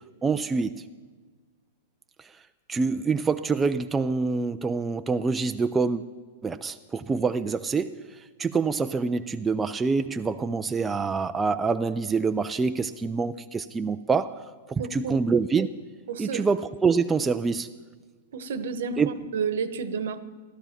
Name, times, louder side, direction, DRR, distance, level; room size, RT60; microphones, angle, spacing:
voice 1, 0.2-0.8 2.7-6.0 6.4-7.9 8.4-14.4 14.7-15.7 16.2-17.7 19.0-19.1, right 4 dB, 10° right, 0.3 m, -26 dB
voice 2, 14.8-15.1 16.1-16.5 18.3-20.2, right 5 dB, 70° right, 1.1 m, -31 dB
15.5 x 12.5 x 5.9 m
hypercardioid pair, 155°, 0 cm